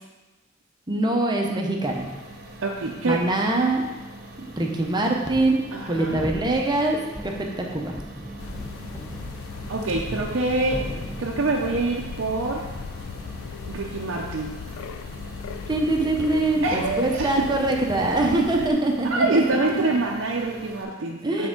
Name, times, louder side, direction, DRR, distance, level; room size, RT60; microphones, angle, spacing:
voice 1, 0.9-2.1 3.0-3.8 4.6-8.0 15.7-19.4 21.2-21.5, right 2 dB, 20° right, 1 dB, 0.7 m, -23 dB
sound 1, 1.8-20.8, right 1 dB, 50° right, 1.0 m, -43 dB
voice 2, 2.6-3.2 5.7-6.2 9.7-10.8 11.2-12.6 13.7-14.5 16.6-17.3 19.1-21.5, right 2 dB, 70° right, -1 dB, 0.6 m, -25 dB
sound 2, 5.3-20.7, equal, 5° left, 0.3 m, -40 dB
sound 3, 8.4-18.7, left 6 dB, 80° left, 0.3 m, -38 dB
8.5 x 3.6 x 3.7 m, 1.1 s
head